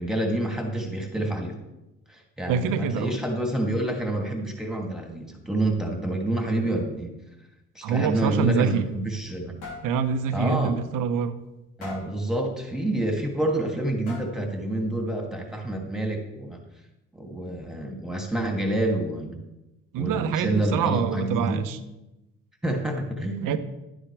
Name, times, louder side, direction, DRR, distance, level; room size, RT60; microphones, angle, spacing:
voice 1, 0.0-1.6 2.1-7.1 7.7-9.6 10.3-10.8 11.8-16.6 17.1-19.4 20.0-21.7 22.6-23.6, right 1 dB, ahead, 2 dB, 2.6 m, -28 dB
voice 2, 2.5-3.2 7.8-8.8 9.8-11.4 19.9-21.8 23.4-23.6, right 7 dB, 65° right, 11 dB, 0.9 m, -25 dB
sound 1, 8.6-9.4 9.6-9.9 10.4-10.5 10.9-11.0 11.8-12.2 13.3-13.4 14.1-14.5, left 3 dB, 85° left, 3.2 m, -40 dB
11.5 x 9.9 x 3.4 m, 0.97 s
hypercardioid pair, 60°, 35 cm